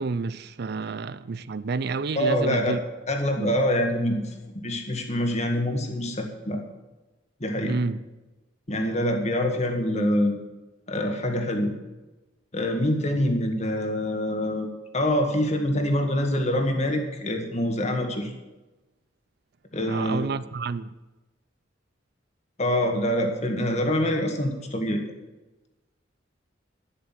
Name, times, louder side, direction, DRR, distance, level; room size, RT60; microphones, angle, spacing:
voice 1, 0.0-2.8 3.4-3.6 7.6-8.0 19.9-20.9, right 4 dB, 55° right, 0.5 m, -29 dB
voice 2, 2.1-2.8 3.1-6.6 7.4-7.8 8.7-10.3 10.9-11.7 12.5-18.3 19.7-20.3 22.6-25.1, left 1 dB, 35° left, 1.9 m, -25 dB
11.5 x 10.0 x 7.5 m
head